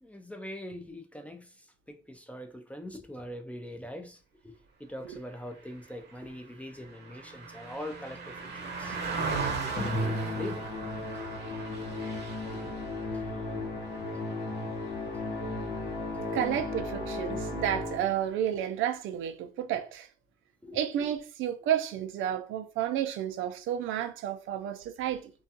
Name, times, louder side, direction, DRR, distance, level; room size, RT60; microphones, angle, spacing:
voice 1, 0.0-1.5 1.9-4.2 4.4-4.5 4.8-9.0 9.6-10.7 12.5-12.7 13.1-13.5 20.6-20.8, equal, 5° left, 0.4 m, -42 dB
Car passing by, 5.6-15.2 15.6-15.8, right 4 dB, 60° right, 0.7 m, -38 dB
Musical instrument, 9.8-18.3, left 2 dB, 60° left, 1.0 m, -35 dB
voice 2, 16.3-20.1 20.7-25.3, right 10 dB, 85° right, 0.4 m, -31 dB
2.3 x 2.2 x 2.7 m
cardioid pair, 90°, 20 cm